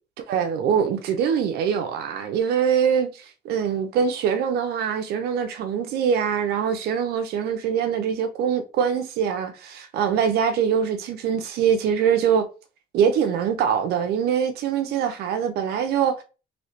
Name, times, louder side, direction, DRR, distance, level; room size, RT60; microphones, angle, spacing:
voice 1, 0.3-12.5 12.9-16.2, right 7 dB, 75° right, 0.5 m, -23 dB
3.1 x 2.7 x 2.9 m
cardioid pair, 110°, 17 cm